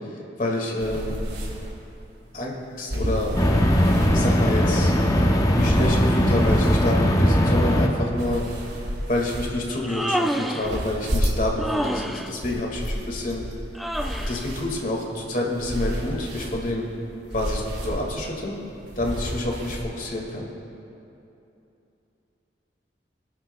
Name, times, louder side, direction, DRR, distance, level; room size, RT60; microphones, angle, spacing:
voice 1, 0.4-1.1 2.3-3.3 4.1-4.9 5.5-8.5 9.1-13.4 14.2-16.9 17.3-18.6 19.0-20.5, left 1 dB, 50° left, -1 dB, 1.8 m, -28 dB
sound 1, 0.8-19.8, equal, 75° right, 2.6 m, -32 dB
sound 2, 3.4-7.9, equal, 20° left, 0.8 m, -19 dB
Human voice, 9.7-10.8 11.6-12.3 13.7-14.4, equal, ahead, 0.4 m, -28 dB
21.0 x 12.0 x 2.2 m, 2.9 s
head